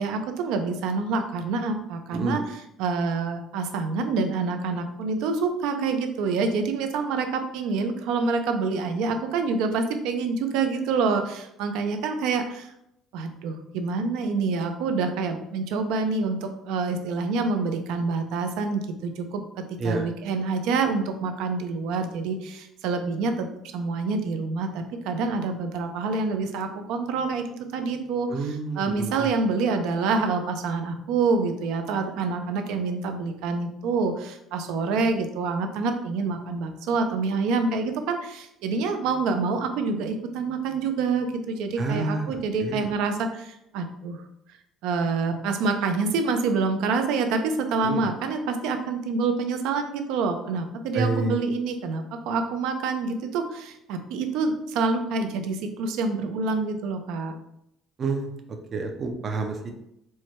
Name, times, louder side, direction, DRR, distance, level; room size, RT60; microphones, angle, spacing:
voice 1, 0.0-12.7 13.1-23.5 23.7-27.5 27.7-44.2 44.8-57.3, right 4 dB, 80° right, 6 dB, 0.5 m, -27 dB
voice 2, 28.3-29.3 41.8-42.9 47.8-48.1 50.9-51.4 58.0-58.3 58.7-59.7, right 3 dB, 30° right, 4 dB, 0.4 m, -28 dB
4.6 x 2.2 x 4.2 m, 0.79 s
cardioid pair, 180°, 0 cm